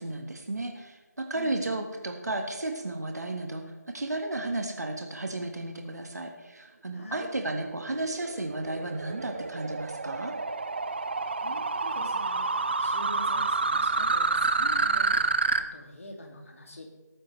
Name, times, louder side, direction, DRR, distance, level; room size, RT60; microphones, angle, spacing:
voice 1, 0.0-3.6 3.9-10.3, right 2 dB, 65° right, 4 dB, 1.6 m, -33 dB
voice 2, 1.3-1.6 6.9-7.3 11.4-15.3 15.6-16.9, left 1 dB, 50° left, 1 dB, 2.4 m, -44 dB
sound 1, 7.6-15.6, right 3 dB, 35° right, 0.6 m, -28 dB
17.5 x 9.8 x 3.3 m, 1.2 s
figure-of-eight pair, 170°, 10 cm